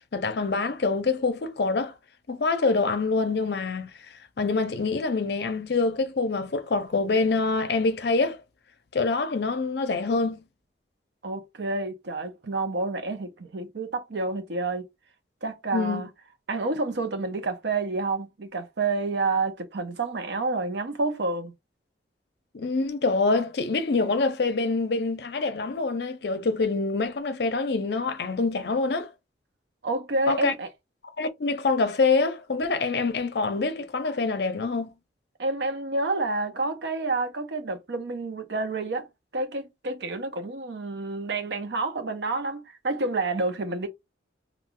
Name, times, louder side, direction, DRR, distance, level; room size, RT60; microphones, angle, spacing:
voice 1, 0.1-1.9 2.3-3.9 4.4-8.4 8.9-10.4 15.7-16.0 22.5-29.1 30.3-30.5 31.2-34.9, left 3 dB, 65° left, 0.5 m, -25 dB
voice 2, 11.2-14.9 15.4-16.1 16.5-21.5 29.8-30.7 35.4-39.1 39.3-43.9, right 3 dB, 70° right, 0.6 m, -29 dB
2.3 x 2.3 x 3.6 m
head